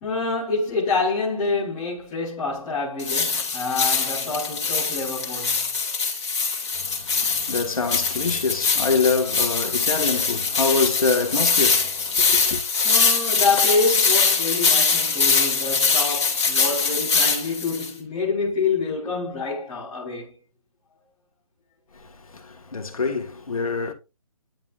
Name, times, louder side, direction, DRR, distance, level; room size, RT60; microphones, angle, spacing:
voice 1, 0.0-5.7 12.8-20.3, left 4 dB, 5° left, 0.5 m, -26 dB
sound 1, 3.0-17.9, left 5 dB, 50° left, 2.3 m, -22 dB
voice 2, 6.8-12.6 22.3-23.9, left 4 dB, 75° left, 1.8 m, -25 dB
11.0 x 3.8 x 2.5 m
hypercardioid pair, 175°, 18 cm